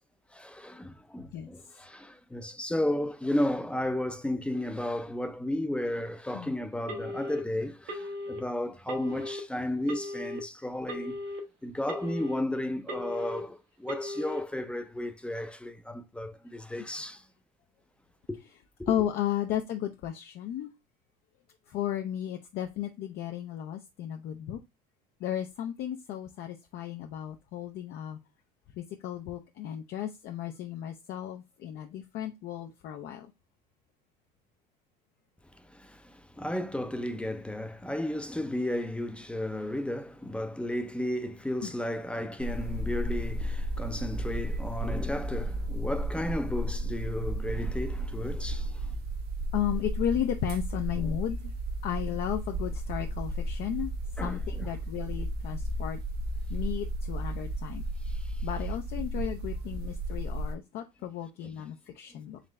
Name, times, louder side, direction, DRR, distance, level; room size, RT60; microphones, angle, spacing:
voice 1, 0.3-11.2 11.6-17.2 18.3-18.4 18.8-18.9 35.7-48.9 51.0-51.2 54.2-54.7 58.1-58.5, left 1 dB, 5° left, 0.5 m, -33 dB
Telephone, 6.9-7.4 7.9-8.4 8.9-9.4 9.9-10.4 10.9-11.4 11.9-12.4 12.9-13.4 13.9-14.4, left 1 dB, 85° right, 1.3 m, -37 dB
voice 2, 18.9-20.7 21.7-24.6 25.2-28.2 28.7-33.3 41.6-41.7 49.5-51.5 51.8-53.9 54.2-56.0 56.5-57.8 58.4-62.4, left 10 dB, 60° left, 0.5 m, -34 dB
sound 1, 42.4-60.6, right 1 dB, 60° right, 0.7 m, -33 dB
3.8 x 3.1 x 3.2 m
supercardioid pair, 100°, 19 cm